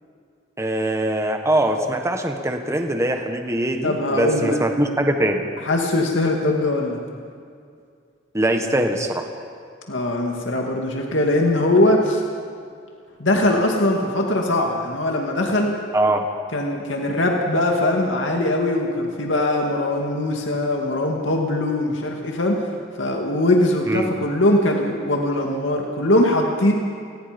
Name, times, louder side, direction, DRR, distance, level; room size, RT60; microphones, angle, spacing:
voice 1, 0.6-5.5 8.3-9.3 15.9-16.3 23.9-24.1, right 1 dB, 15° right, 4 dB, 1.4 m, -22 dB
voice 2, 3.8-4.6 5.6-7.0 9.9-12.2 13.2-15.8 16.5-22.6 23.0-26.7, left 1 dB, 80° left, 1 dB, 2.4 m, -21 dB
29.5 x 20.0 x 5.3 m, 2.3 s
head